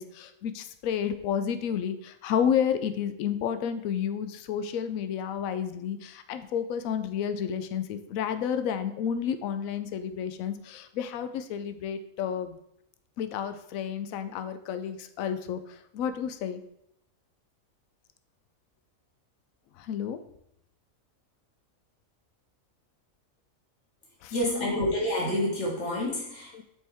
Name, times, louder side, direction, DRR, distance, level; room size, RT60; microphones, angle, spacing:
voice 1, 0.0-12.6 13.2-16.6 19.8-20.2 24.2-24.7 26.5-26.6, left 8 dB, 80° left, 10 dB, 1.0 m, -31 dB
voice 2, 24.3-26.6, left 1 dB, 55° left, -4 dB, 2.2 m, -28 dB
7.7 x 4.4 x 3.4 m, 0.78 s
omnidirectional pair, 1.4 m